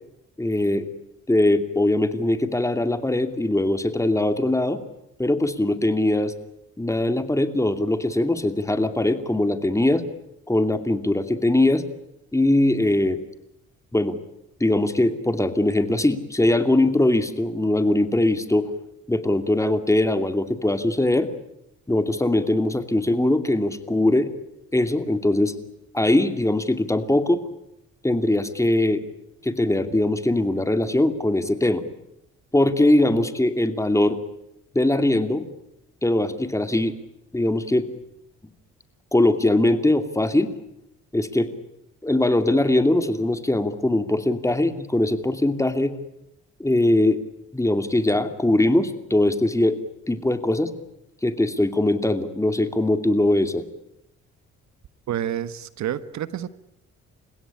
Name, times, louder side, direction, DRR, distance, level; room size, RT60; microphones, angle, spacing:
voice 1, 0.4-0.9 1.3-4.8 5.2-6.3 6.8-10.0 10.5-11.8 12.3-13.2 13.9-14.2 14.6-18.7 19.1-21.3 21.9-24.3 24.7-25.6 25.9-27.4 28.0-29.0 29.4-31.8 32.5-34.2 34.7-35.5 36.0-36.9 37.3-37.9 39.1-40.5 41.1-41.5 42.0-45.9 46.6-47.2 47.5-49.8 50.1-50.7 51.2-53.6, left 1 dB, 10° left, 9 dB, 2.6 m, -21 dB
voice 2, 55.1-56.5, right 10 dB, 65° right, 14 dB, 1.3 m, -28 dB
30.0 x 16.5 x 10.0 m, 0.82 s
cardioid pair, 90°, 30 cm